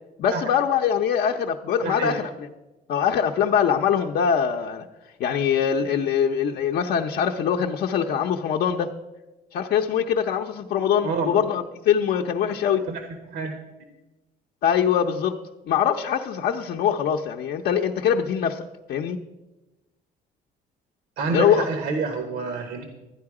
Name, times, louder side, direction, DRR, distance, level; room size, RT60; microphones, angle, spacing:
voice 1, 0.2-2.5 2.9-4.9 5.2-8.9 9.5-12.8 14.6-15.4 15.7-18.6 18.9-19.2 21.3-21.7, left 8 dB, 60° left, 1 dB, 0.7 m, -23 dB
voice 2, 1.8-2.2 11.0-11.4 12.7-13.5 21.2-22.9, right 4 dB, 80° right, 5 dB, 1.2 m, -28 dB
12.5 x 9.6 x 4.8 m, 1.1 s
cardioid pair, 110°, 17 cm